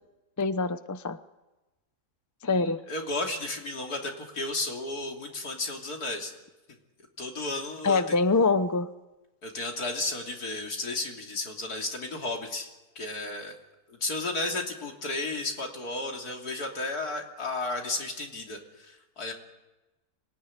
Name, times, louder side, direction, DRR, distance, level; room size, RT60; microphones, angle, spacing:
voice 1, 0.4-1.2 2.4-2.8 7.8-8.9, left 3 dB, 20° left, 0.5 m, -24 dB
voice 2, 2.4-6.3 7.2-8.0 9.4-12.7 13.0-13.6 13.9-19.3, left 2 dB, 75° left, 3.5 m, -33 dB
25.5 x 19.0 x 9.8 m
omnidirectional pair, 1.6 m